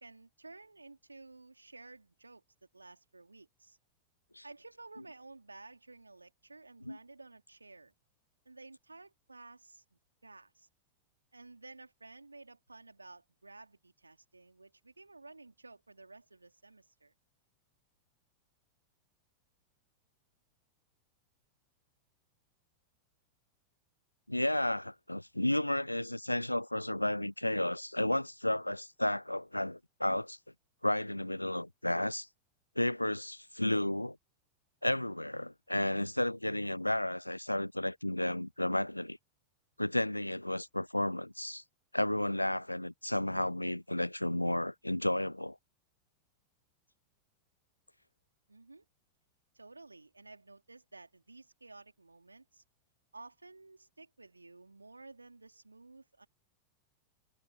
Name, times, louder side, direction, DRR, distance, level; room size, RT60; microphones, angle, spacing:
voice 1, 0.0-2.4 2.7-3.8 4.4-7.9 8.4-10.7 11.3-17.1 48.5-48.8 49.5-52.6 53.1-56.3, right 3 dB, 80° right, 3.2 m, -54 dB
voice 2, 24.3-30.4 30.8-32.3 32.8-34.2 34.8-39.2 39.8-41.6 41.9-45.6, left 1 dB, 85° left, 0.4 m, -32 dB
figure-of-eight pair, 90°, 0 cm